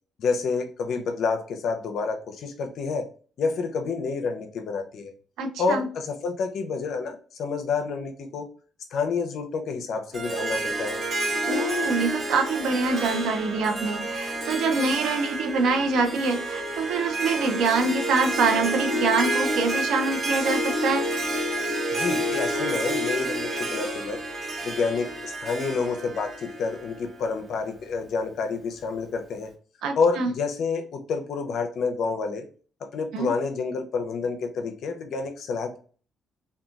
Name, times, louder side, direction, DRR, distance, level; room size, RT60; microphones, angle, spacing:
voice 1, 0.2-3.0 3.4-5.1 5.6-8.5 8.9-11.0 21.9-24.2 24.6-29.5 30.0-32.5 32.8-35.8, left 4 dB, 70° left, 5 dB, 0.5 m, -28 dB
voice 2, 5.4-5.9 11.5-21.1 29.8-30.3 33.1-33.3, right 4 dB, 80° right, 6 dB, 0.5 m, -25 dB
Harp, 10.1-27.4, right 1 dB, 45° right, 1.0 m, -29 dB
2.9 x 2.2 x 2.4 m, 0.41 s
cardioid pair, 90°, 0 cm